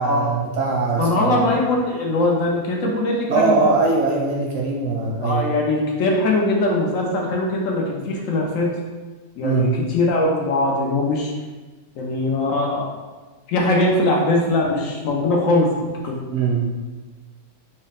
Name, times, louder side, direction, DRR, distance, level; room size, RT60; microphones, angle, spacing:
voice 1, 0.0-1.4 3.3-5.4 9.4-9.8 16.3-16.7, right 3 dB, 65° right, -2 dB, 1.0 m, -21 dB
voice 2, 1.0-3.6 5.2-8.8 9.4-11.3 12.0-13.0 13.5-15.7 16.0-16.2, left 2 dB, 70° left, -1 dB, 0.9 m, -21 dB
4.0 x 2.0 x 4.0 m, 1.3 s
omnidirectional pair, 1.6 m